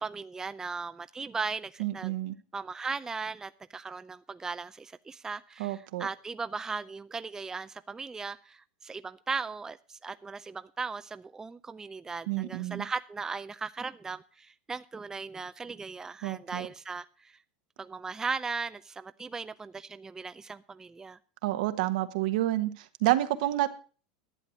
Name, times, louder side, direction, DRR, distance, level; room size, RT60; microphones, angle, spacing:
voice 1, 0.0-2.1 2.5-17.4 17.8-21.2, right 4 dB, 15° right, 0.5 m, -37 dB
voice 2, 1.8-2.4 5.6-6.1 12.3-12.8 16.2-16.7 21.4-23.7, right 15 dB, 70° right, 1.3 m, -29 dB
11.5 x 7.9 x 6.5 m
supercardioid pair, 120°, 4 cm